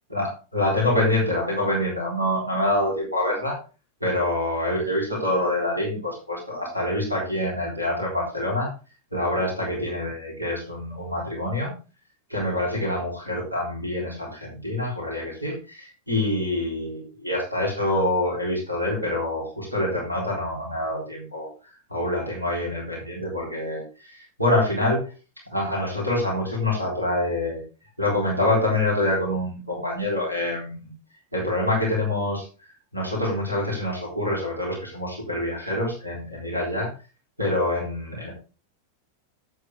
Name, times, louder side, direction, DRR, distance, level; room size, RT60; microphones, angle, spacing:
voice 1, 0.1-3.6 4.0-8.7 9.1-11.7 12.3-21.5 21.9-25.1 25.5-27.6 28.0-30.9 31.3-36.9 37.4-38.3, left 1 dB, 85° right, -3 dB, 4.0 m, -26 dB
8.5 x 7.8 x 3.7 m, 0.33 s
figure-of-eight pair, 90°, 0 cm